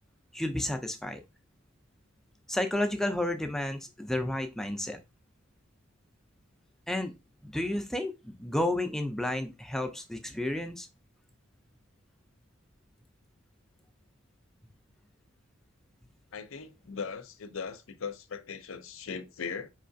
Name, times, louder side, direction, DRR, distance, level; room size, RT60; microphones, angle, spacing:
voice 1, 0.3-1.2 2.5-5.0 6.9-7.1 7.4-10.9, left 1 dB, ahead, 0.4 m, -31 dB
voice 2, 16.3-19.7, left 5 dB, 65° left, 0.5 m, -39 dB
4.6 x 3.2 x 2.5 m
head